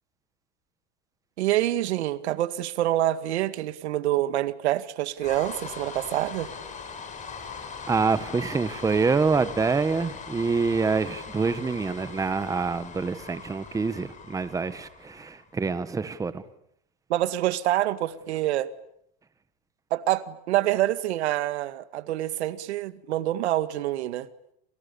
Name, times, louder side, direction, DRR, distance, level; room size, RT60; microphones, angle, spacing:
voice 1, 1.4-6.5 17.1-18.7 19.9-24.3, right 14 dB, 85° right, 2.1 m, -26 dB
sound 1, 5.2-15.5, left 5 dB, 20° left, 6.1 m, -41 dB
voice 2, 7.9-16.4, right 4 dB, 10° right, 1.4 m, -26 dB
29.0 x 29.0 x 7.1 m
supercardioid pair, 145°, 32 cm